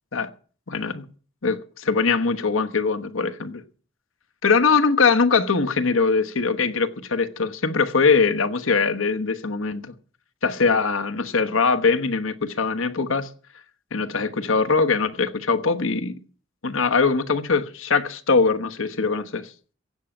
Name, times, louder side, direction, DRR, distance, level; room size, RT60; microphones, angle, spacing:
voice 1, 0.7-1.0 1.4-3.6 4.4-9.9 10.4-13.3 13.9-16.2 16.6-19.5, left 4 dB, 70° left, 1.1 m, -22 dB
16.0 x 6.4 x 9.0 m
head